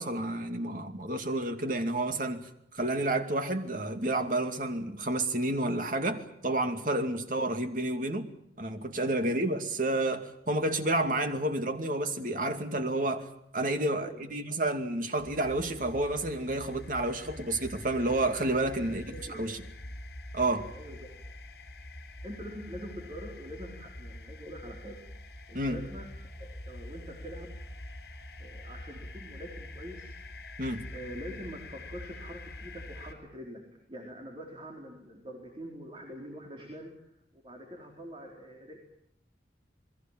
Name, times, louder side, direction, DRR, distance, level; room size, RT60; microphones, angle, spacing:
voice 1, 0.0-2.4 2.7-8.3 8.6-13.3 13.5-19.6 20.3-20.7 25.5-25.8 30.6-30.8, right 2 dB, 50° right, 2.4 m, -30 dB
voice 2, 13.9-14.3 18.8-19.5 20.5-21.1 22.2-25.0 25.5-26.1 26.4-27.5 28.4-30.1 30.9-33.6 33.9-36.9 37.3-38.8, equal, 30° right, 4.2 m, -44 dB
sound 1, 15.2-33.1, left 1 dB, 70° left, 4.7 m, -45 dB
28.0 x 21.5 x 7.5 m
head